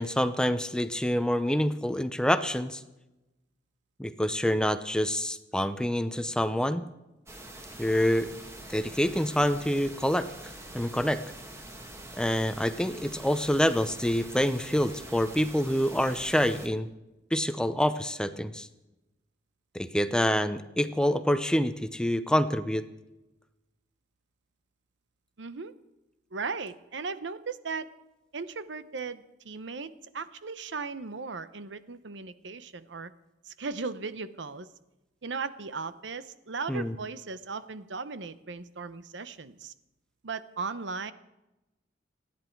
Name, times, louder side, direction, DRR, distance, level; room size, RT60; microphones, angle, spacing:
voice 1, 0.0-2.8 4.0-6.8 7.8-8.3 8.7-10.3 10.7-11.2 12.2-16.9 17.3-18.7 19.7-22.8 36.7-36.9, equal, 5° left, 11 dB, 0.7 m, -26 dB
sound 1, 7.3-16.7, right 1 dB, 15° right, 1.8 m, -45 dB
voice 2, 25.4-25.7 26.3-27.9 28.3-33.1 33.4-34.7 35.2-39.7 40.2-41.1, right 4 dB, 80° right, 13 dB, 0.8 m, -37 dB
28.5 x 10.0 x 4.6 m, 0.99 s
head